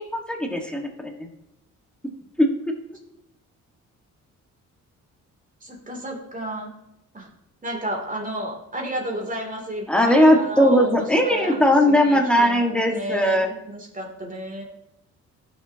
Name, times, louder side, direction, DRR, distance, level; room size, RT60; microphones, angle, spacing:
voice 1, 0.1-0.9 1.2-1.3 2.4-2.7 9.9-13.5, equal, 5° left, 2 dB, 1.6 m, -19 dB
voice 2, 5.6-6.7 7.1-7.3 7.6-14.6, right 1 dB, 25° right, 0 dB, 2.8 m, -32 dB
14.5 x 6.5 x 2.9 m, 0.87 s
cardioid pair, 90°, 30 cm